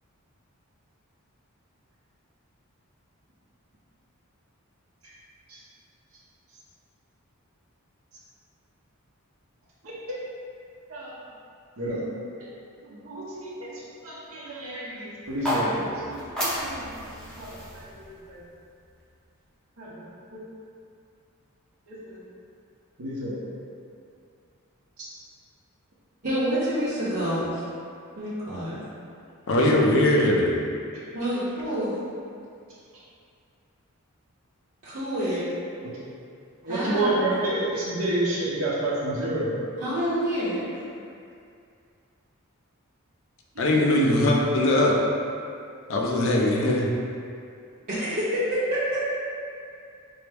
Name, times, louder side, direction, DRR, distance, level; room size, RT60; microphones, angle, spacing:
voice 1, 12.8-16.8 17.4-18.4 19.8-20.4 21.9-22.2 23.0-23.4 25.0-25.1 36.6-39.5 43.5-43.8, right 1 dB, 75° right, -9 dB, 0.7 m, -30 dB
sound 1, 15.2-19.4, equal, 5° left, 0.7 m, -32 dB
voice 2, 26.2-27.6 28.2-28.8 31.1-31.9 34.8-35.4 36.7-37.4 39.8-40.6 47.9-49.0, equal, 45° right, -13 dB, 0.7 m, -27 dB
voice 3, 29.5-30.5 43.6-45.0 45.9-46.9, left 1 dB, 65° left, -1 dB, 0.5 m, -21 dB
4.5 x 2.0 x 3.4 m, 2.4 s
head